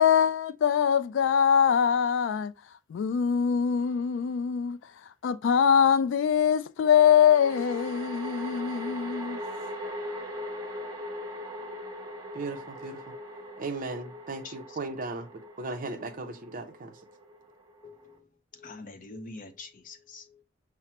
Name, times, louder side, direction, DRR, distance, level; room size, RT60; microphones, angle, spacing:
voice 1, 0.0-2.5 2.9-4.8 5.2-9.4, left 8 dB, 80° left, 0.3 m, -23 dB
sound 1, 3.8-3.9 6.8-18.2, equal, 20° right, 1.2 m, -40 dB
voice 2, 12.3-13.1 13.6-17.0, right 3 dB, 45° right, 0.6 m, -37 dB
voice 3, 14.4-14.8 17.8-18.3 18.5-20.4, left 3 dB, 45° left, 0.6 m, -45 dB
5.7 x 2.0 x 4.3 m
head